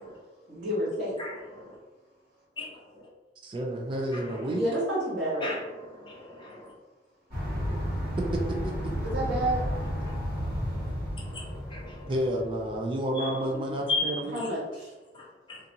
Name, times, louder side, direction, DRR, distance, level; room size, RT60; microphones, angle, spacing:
voice 1, 0.5-1.2 4.5-5.6 9.0-9.6 13.5-13.6 14.3-14.9, right 1 dB, 75° right, 1.3 m, -29 dB
voice 2, 1.2-1.7 2.6-2.7 4.1-4.2 5.4-5.6 6.0-6.7 10.0-10.1 10.7-10.9 11.3-12.0 13.1-13.4 13.9-14.2, left 3 dB, 30° left, 0.8 m, -34 dB
voice 3, 3.4-4.6 8.3-8.9 12.1-14.4, right 1 dB, 30° right, 0.3 m, -30 dB
sound 1, 7.3-12.8, equal, 60° right, 1.3 m, -32 dB
2.6 x 2.4 x 2.7 m
head